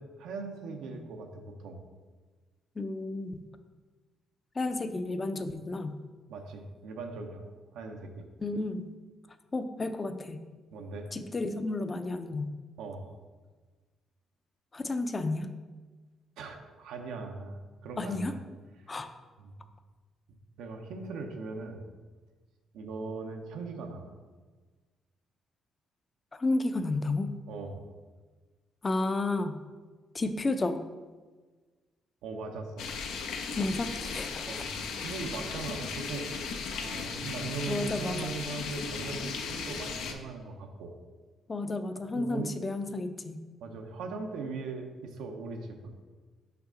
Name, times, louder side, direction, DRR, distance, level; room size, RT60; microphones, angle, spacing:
voice 1, 0.0-1.8 6.3-7.5 7.7-8.3 10.7-11.1 12.8-13.1 16.4-18.4 19.4-19.5 20.6-21.8 22.7-24.1 27.5-27.8 32.2-32.9 34.5-34.7 35.0-40.9 42.1-42.6 43.6-45.9, right 4 dB, 90° right, 4 dB, 0.7 m, -39 dB
voice 2, 2.8-3.4 4.6-6.0 8.4-8.9 9.5-10.4 11.1-12.5 14.7-15.5 18.0-18.4 18.9-19.1 26.3-27.3 28.8-29.6 30.1-30.8 33.6-34.5 37.7-38.3 41.5-43.4, left 2 dB, 30° left, 9 dB, 0.5 m, -32 dB
sound 1, 32.8-40.1, left 5 dB, 85° left, 0.6 m, -36 dB
5.7 x 5.6 x 3.8 m, 1.4 s
cardioid pair, 90°, 0 cm